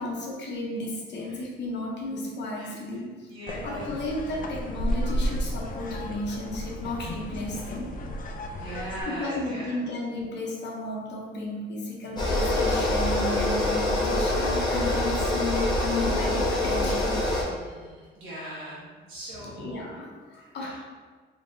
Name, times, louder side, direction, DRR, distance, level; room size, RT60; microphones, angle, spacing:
voice 1, 0.0-3.3 3.6-7.9 9.1-17.2 19.3-20.8, left 2 dB, 60° left, -2 dB, 0.9 m, -33 dB
voice 2, 3.3-3.9 8.5-9.8 17.4-19.8 20.4-20.8, right 1 dB, 85° right, -8 dB, 1.2 m, -39 dB
sound 1, 3.5-9.0, equal, 45° left, 0.5 m, -32 dB
sound 2, 12.2-17.4, left 1 dB, 20° left, 1.1 m, -25 dB
3.5 x 3.3 x 2.7 m, 1.5 s
cardioid pair, 90°, 20 cm